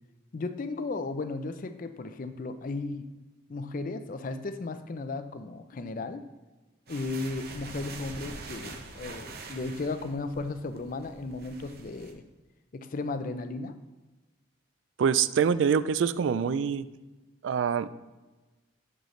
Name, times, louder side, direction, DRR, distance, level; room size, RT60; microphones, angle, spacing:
voice 1, 0.3-3.1 3.5-6.2 6.9-12.2 12.7-13.8, left 3 dB, 45° left, 10 dB, 0.4 m, -35 dB
sound 1, 6.9-12.1, right 3 dB, 55° right, 0.8 m, -44 dB
voice 2, 15.0-16.8 17.4-17.9, right 7 dB, 75° right, 15 dB, 0.3 m, -25 dB
6.5 x 6.4 x 3.1 m, 1.2 s
head